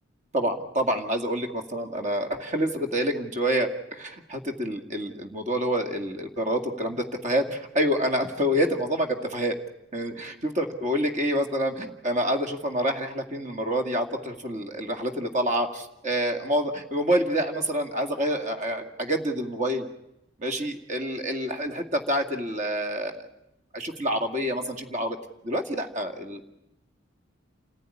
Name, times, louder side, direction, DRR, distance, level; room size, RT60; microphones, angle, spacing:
voice 1, 0.3-9.5 9.9-19.9 20.4-23.3 23.7-25.2 25.4-26.5, equal, 40° right, 5 dB, 2.1 m, -27 dB
29.0 x 14.5 x 9.8 m, 0.88 s
head